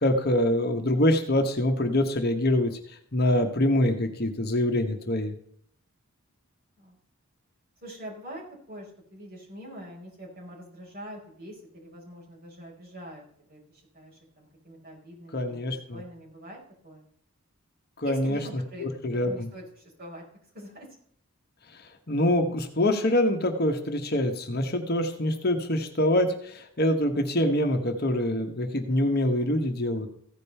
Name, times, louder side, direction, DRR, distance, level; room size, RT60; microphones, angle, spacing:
voice 1, 0.0-2.8 3.1-5.3 15.3-16.0 18.0-18.4 18.8-19.5 22.1-30.1, left 1 dB, 45° left, 5 dB, 1.1 m, -25 dB
voice 2, 7.8-16.6 16.8-17.1 18.0-18.9 19.2-20.2 20.5-20.9, right 1 dB, 40° right, -5 dB, 5.1 m, -44 dB
15.5 x 5.3 x 5.5 m, 0.66 s
head